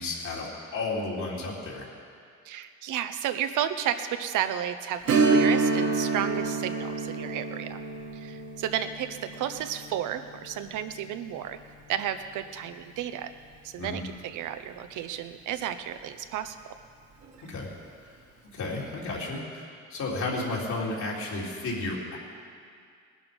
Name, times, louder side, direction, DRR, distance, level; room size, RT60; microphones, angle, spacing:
voice 1, 0.0-1.9 13.8-14.0 17.5-17.7 18.5-22.2, left 2 dB, 70° left, -5 dB, 3.8 m, -32 dB
voice 2, 2.4-7.8 8.1-11.6 11.9-13.3 13.6-16.6, right 10 dB, 90° right, 9 dB, 0.9 m, -32 dB
Strum, 5.1-14.3 14.6-14.7 17.2-17.4 17.8-17.9, right 4 dB, 60° right, 1.9 m, -30 dB
19.0 x 11.5 x 5.3 m, 2.2 s
cardioid pair, 90°, 30 cm